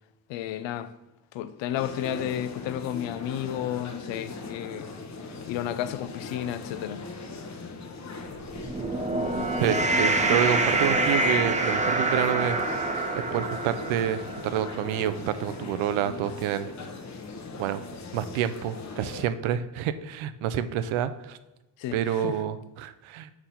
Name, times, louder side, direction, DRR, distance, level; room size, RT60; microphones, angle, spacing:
voice 1, 0.3-0.9 1.3-4.9 5.3-7.1 21.8-22.4, left 11 dB, 70° left, 0.6 m, -32 dB
sound 1, 1.8-19.3, left 3 dB, 35° left, 0.8 m, -40 dB
sound 2, 8.4-15.0, right 2 dB, 15° right, 0.5 m, -26 dB
voice 2, 9.6-12.6 13.3-16.7 17.6-17.8 18.1-21.4 21.9-23.3, right 10 dB, 85° right, 0.6 m, -28 dB
4.8 x 3.8 x 5.6 m
cardioid pair, 100°, 46 cm